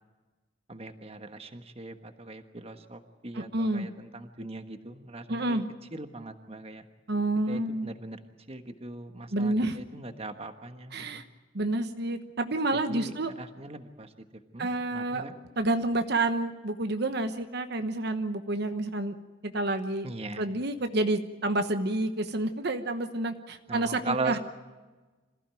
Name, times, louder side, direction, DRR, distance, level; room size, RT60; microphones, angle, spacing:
voice 1, 0.7-5.6 5.9-6.8 7.5-8.2 8.5-11.2 12.7-14.1 14.5-15.3 20.0-20.5 23.7-24.4, right 2 dB, 35° right, 7 dB, 1.3 m, -39 dB
voice 2, 3.3-3.9 5.3-5.7 7.1-7.9 9.3-9.8 10.9-11.2 11.5-13.3 14.6-15.2 15.6-19.2 19.4-20.1 20.4-24.4, right 2 dB, 60° right, 7 dB, 1.2 m, -29 dB
26.5 x 15.5 x 9.1 m, 1.3 s
head